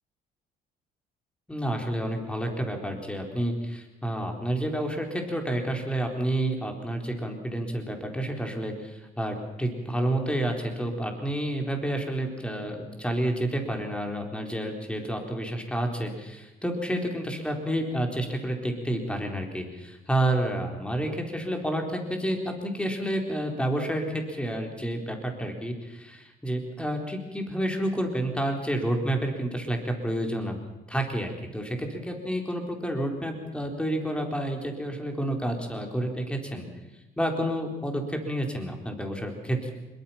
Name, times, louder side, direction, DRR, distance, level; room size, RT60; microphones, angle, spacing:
voice 1, 1.5-30.6 30.9-36.7 37.2-39.7, right 1 dB, 5° left, 3 dB, 4.2 m, -29 dB
24.5 x 22.5 x 5.9 m, 1.1 s
cardioid pair, 110°, 17 cm